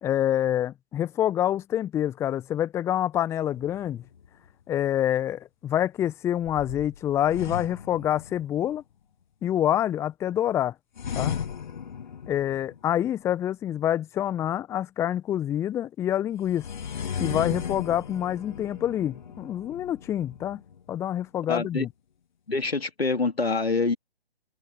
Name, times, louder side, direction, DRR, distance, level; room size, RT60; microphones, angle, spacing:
voice 1, 0.0-4.0 4.7-8.8 9.4-10.7 11.1-11.4 12.3-16.6 17.2-20.6 20.9-21.9, left 11 dB, 10° left, 1.5 m, -27 dB
sound 1, 3.5-4.5 6.4-8.8 11.0-13.1 16.4-21.1, left 7 dB, 45° left, 2.7 m, -36 dB
voice 2, 21.5-21.9 22.5-24.0, left 3 dB, 70° left, 2.8 m, -26 dB
figure-of-eight pair, 140°, 32 cm